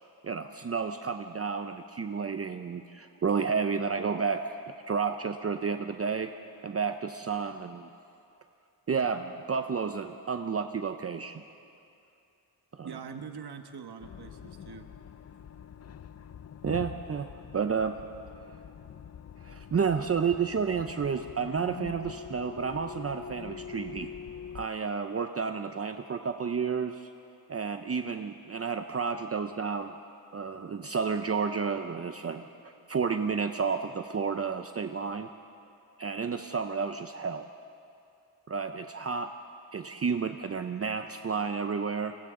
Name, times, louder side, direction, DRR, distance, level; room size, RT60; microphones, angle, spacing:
voice 1, 0.2-4.6 4.9-6.3 6.6-7.9 8.9-11.4 12.7-12.9 16.6-17.3 17.5-18.0 19.4-24.1 24.5-27.1 27.5-29.9 30.3-32.5 32.9-35.3 36.0-37.5 38.5-39.3 39.7-42.2, right 5 dB, 35° right, 7 dB, 0.6 m, -31 dB
voice 2, 12.8-14.9, right 6 dB, 65° right, 7 dB, 1.3 m, -43 dB
sound 1, 14.0-24.7, left 8 dB, 40° left, 0.4 m, -44 dB
29.0 x 24.0 x 3.8 m, 2.6 s
wide cardioid pair, 125°, 41 cm